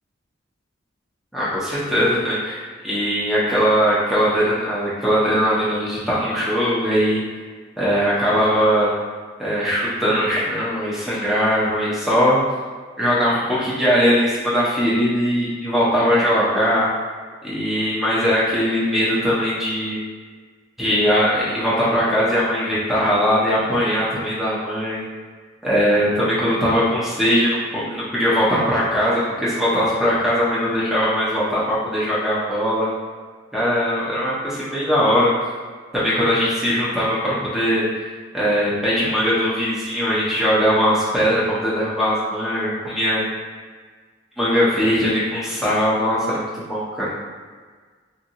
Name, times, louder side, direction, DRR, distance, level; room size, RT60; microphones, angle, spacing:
voice 1, 1.3-7.2 7.8-8.9 9.4-12.4 13.0-16.9 17.4-20.0 20.8-25.1 25.6-32.9 33.5-35.3 35.9-37.9 38.3-43.2 44.4-47.1, equal, ahead, -9 dB, 0.7 m, -20 dB
2.7 x 2.7 x 2.7 m, 1.5 s
head